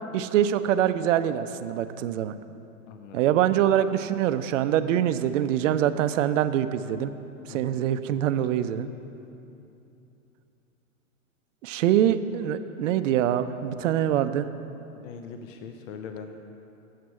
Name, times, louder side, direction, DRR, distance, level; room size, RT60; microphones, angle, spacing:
voice 1, 0.1-2.3 3.1-7.1 7.5-8.9 11.6-14.5, right 10 dB, 60° right, 12 dB, 0.5 m, -24 dB
voice 2, 2.9-3.2 7.5-7.8 8.4-8.5 14.9-16.4, left 6 dB, 60° left, 6 dB, 0.6 m, -41 dB
7.7 x 6.6 x 4.7 m, 2.8 s
hypercardioid pair, 120°, 43 cm